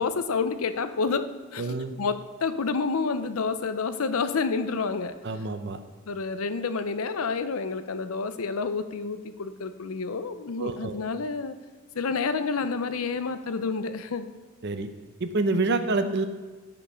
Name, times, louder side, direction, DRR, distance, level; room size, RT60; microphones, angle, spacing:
voice 1, 0.0-5.1 6.1-11.5 11.9-14.3, left 4 dB, 90° left, 11 dB, 0.6 m, -29 dB
voice 2, 1.6-1.9 5.2-5.8 10.6-11.0 14.6-14.9 15.2-16.2, right 3 dB, 55° right, 9 dB, 0.7 m, -27 dB
10.5 x 5.4 x 5.5 m, 1.3 s
head